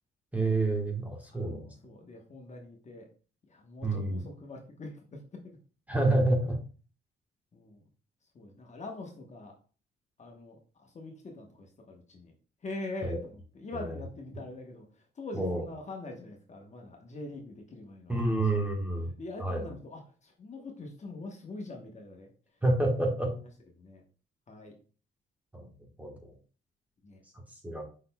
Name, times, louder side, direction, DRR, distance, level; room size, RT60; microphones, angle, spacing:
voice 1, 0.3-1.7 3.8-4.2 5.9-6.6 13.0-13.2 13.7-14.0 15.3-15.6 18.1-19.1 19.4-19.7 22.6-23.3 25.5-25.7 26.0-26.3 27.6-27.8, right 2 dB, 10° right, 1 dB, 1.3 m, -28 dB
voice 2, 1.3-3.1 3.5-5.6 7.5-7.8 8.3-9.6 10.2-12.3 12.6-18.4 19.2-22.3 23.7-24.0 24.5-24.7 27.0-27.2, left 2 dB, 35° left, 1 dB, 1.0 m, -44 dB
5.3 x 4.0 x 2.2 m, 0.38 s
cardioid pair, 90°, 20 cm